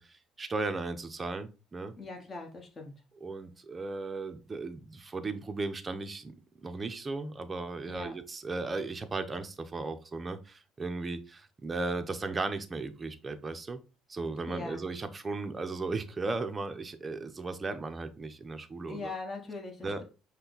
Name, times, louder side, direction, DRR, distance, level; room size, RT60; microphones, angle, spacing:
voice 1, 0.0-1.9 3.1-6.3 6.6-13.8 14.1-19.1 19.8-20.0, right 3 dB, 25° right, 0.7 m, -36 dB
voice 2, 2.0-2.9 7.9-8.1 14.5-14.8 18.9-20.0, left 3 dB, 30° left, 1.5 m, -41 dB
5.5 x 2.3 x 4.0 m
supercardioid pair, 95°, 0 cm